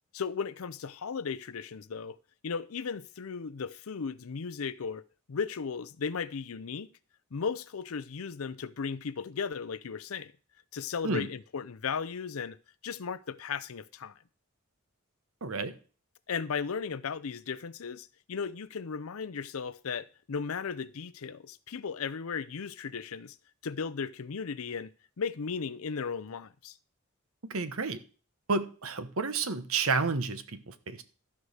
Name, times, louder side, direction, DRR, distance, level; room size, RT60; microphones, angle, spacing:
voice 1, 0.1-2.2 2.4-5.0 5.3-6.9 7.3-10.3 10.7-12.6 12.8-14.2 16.3-23.4 23.6-26.8, left 5 dB, 80° left, 0.6 m, -36 dB
voice 2, 15.4-15.7 27.4-28.0 28.5-31.0, right 4 dB, 80° right, 1.0 m, -31 dB
13.5 x 4.8 x 6.5 m
head